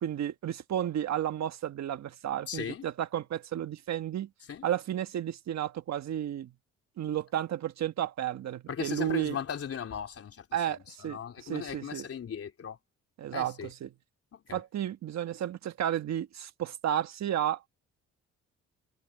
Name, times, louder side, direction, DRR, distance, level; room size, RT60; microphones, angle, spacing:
voice 1, 0.0-4.3 4.6-6.5 7.0-9.4 10.5-12.0 13.2-13.9 14.5-17.8, right 10 dB, 65° right, 1.4 m, -32 dB
voice 2, 2.5-2.8 4.5-4.6 8.7-12.8 13.3-13.7 14.3-14.6, left 8 dB, 50° left, 3.4 m, -38 dB
cardioid pair, 90°, 30 cm